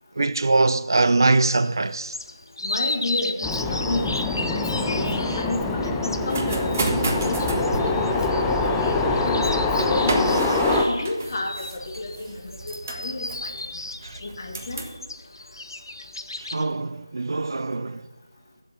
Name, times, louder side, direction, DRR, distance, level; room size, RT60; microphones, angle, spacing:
voice 1, 0.2-2.2 4.9-5.1 14.0-14.2 16.5-18.0, right 3 dB, 55° right, 0.4 m, -22 dB
sound 1, 1.4-16.6, left 2 dB, 65° left, 0.8 m, -35 dB
voice 2, 2.6-4.1 4.5-10.6 10.9-13.5 14.2-14.8, left 2 dB, 40° left, 1.6 m, -31 dB
sound 2, 3.4-10.8, left 3 dB, 5° left, 0.4 m, -24 dB
sound 3, 6.1-15.0, right 3 dB, 30° right, 1.0 m, -31 dB
7.6 x 7.5 x 8.2 m
figure-of-eight pair, 170°, 2 cm